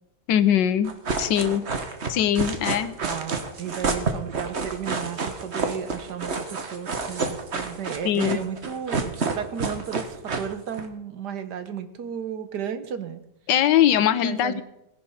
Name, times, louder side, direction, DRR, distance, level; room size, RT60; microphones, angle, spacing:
voice 1, 0.3-0.9 1.2-1.6 2.1-3.0 8.0-8.4 13.5-14.6, left 10 dB, 85° left, 14 dB, 1.5 m, -21 dB
sound 1, 0.8-10.9, right 4 dB, 40° right, 1.5 m, -29 dB
voice 2, 3.0-13.2 14.2-14.6, right 7 dB, 70° right, 10 dB, 1.6 m, -34 dB
17.0 x 10.5 x 5.6 m, 0.87 s
omnidirectional pair, 1.9 m